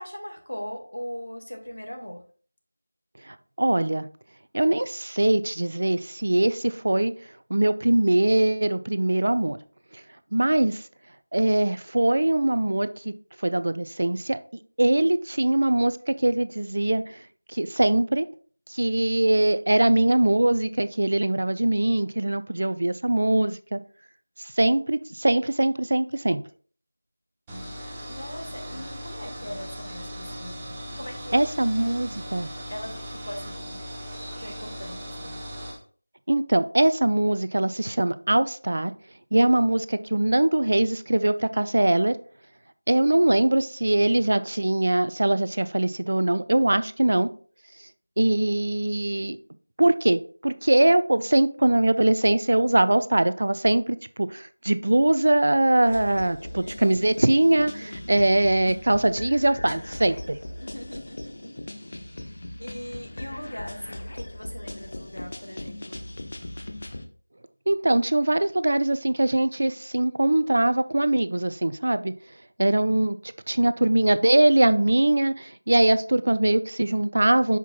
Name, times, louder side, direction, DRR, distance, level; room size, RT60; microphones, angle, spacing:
voice 1, 0.0-2.2 28.1-30.6 30.9-31.5 32.7-33.9 34.4-35.4 57.8-58.1 60.6-61.5 62.2-66.0, equal, 70° left, 1.9 m, -39 dB
voice 2, 3.3-4.1 4.5-7.1 7.5-9.6 10.3-10.8 11.3-13.1 13.4-14.4 14.8-17.1 17.5-18.3 18.7-23.8 24.6-26.4 31.3-32.5 36.3-38.9 39.3-42.2 42.9-47.3 48.2-49.4 49.8-60.4 67.7-72.1 72.6-73.2 73.5-77.6, right 1 dB, 45° right, 0.4 m, -22 dB
sound 1, 27.5-35.8, equal, 10° right, 0.7 m, -38 dB
sound 2, 55.8-67.1, left 1 dB, 40° left, 0.8 m, -39 dB
8.1 x 5.9 x 2.3 m
figure-of-eight pair, 170°, 0 cm